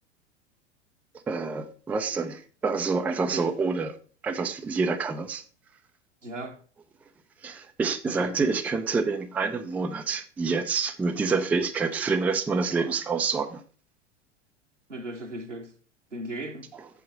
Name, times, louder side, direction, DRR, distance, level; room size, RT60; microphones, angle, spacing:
voice 1, 1.3-3.9 4.2-5.4 7.4-13.6 16.7-16.9, right 4 dB, 5° right, 0.4 m, -27 dB
voice 2, 6.2-6.6 8.0-8.3 14.9-15.7 16.1-16.7, right 1 dB, 85° right, 1.4 m, -37 dB
7.7 x 6.9 x 3.9 m
figure-of-eight pair, 85°, 35 cm